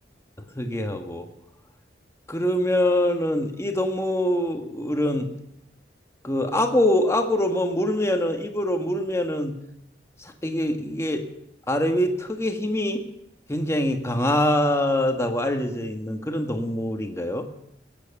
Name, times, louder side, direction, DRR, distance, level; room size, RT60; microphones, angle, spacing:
voice 1, 0.6-1.3 2.3-5.3 6.2-9.5 10.2-11.2 11.7-13.0 13.5-17.5, left 1 dB, 15° left, 4 dB, 1.4 m, -24 dB
20.5 x 9.3 x 7.2 m, 0.81 s
head